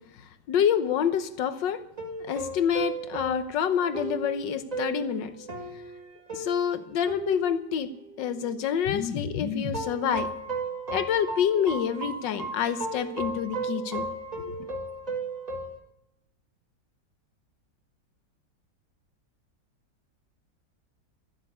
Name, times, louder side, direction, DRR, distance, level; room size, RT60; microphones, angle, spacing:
voice 1, 0.5-1.8 2.2-5.3 6.3-7.9 8.2-10.3 10.9-14.1 14.4-14.6, left 8 dB, 75° left, 12 dB, 1.6 m, -27 dB
sound 1, 2.0-8.6 9.7-15.8, right 3 dB, 20° right, 2.0 m, -35 dB
13.0 x 7.9 x 9.7 m, 0.81 s
omnidirectional pair, 2.0 m